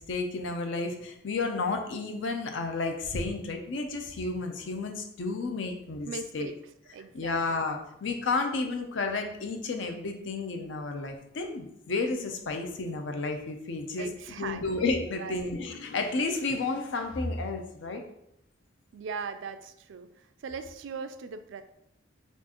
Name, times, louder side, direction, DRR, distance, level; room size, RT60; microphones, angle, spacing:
voice 1, 0.0-6.5 7.1-14.1 14.4-18.0, left 3 dB, 70° left, 5 dB, 0.5 m, -32 dB
voice 2, 6.0-6.6 6.9-7.7 14.0-14.9 15.2-15.5 18.9-21.6, right 5 dB, 70° right, 9 dB, 0.3 m, -39 dB
4.4 x 2.4 x 2.9 m, 0.78 s
head